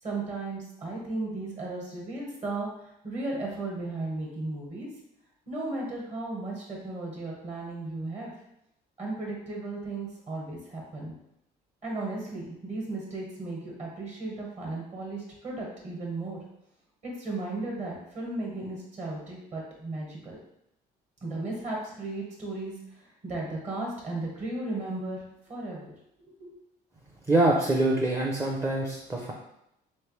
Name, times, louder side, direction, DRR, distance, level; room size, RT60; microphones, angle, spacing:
voice 1, 0.0-4.9 5.5-8.3 9.0-11.1 11.8-16.4 17.0-20.4 21.2-25.9 26.3-26.6, right 2 dB, 45° right, -2 dB, 1.3 m, -35 dB
voice 2, 27.3-29.3, right 2 dB, 15° right, -1 dB, 0.5 m, -25 dB
3.3 x 3.2 x 3.2 m, 0.81 s
cardioid pair, 110°, 17 cm